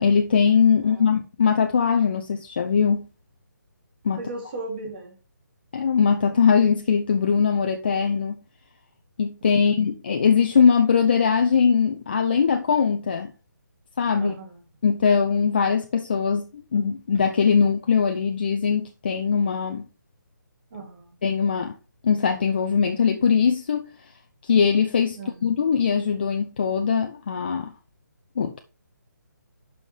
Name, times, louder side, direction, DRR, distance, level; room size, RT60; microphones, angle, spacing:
voice 1, 0.0-3.1 4.0-4.2 5.7-8.4 9.2-13.3 14.0-14.3 14.8-19.9 21.2-21.7 22.0-23.8 24.4-27.7 28.4-28.6, left 6 dB, 30° left, 0.5 m, -21 dB
voice 2, 4.2-5.1 9.6-9.7 14.2-14.6 20.7-21.1 25.2-25.5, right 2 dB, 30° right, 2.6 m, -36 dB
11.0 x 5.5 x 3.2 m
hypercardioid pair, 170°, 10 cm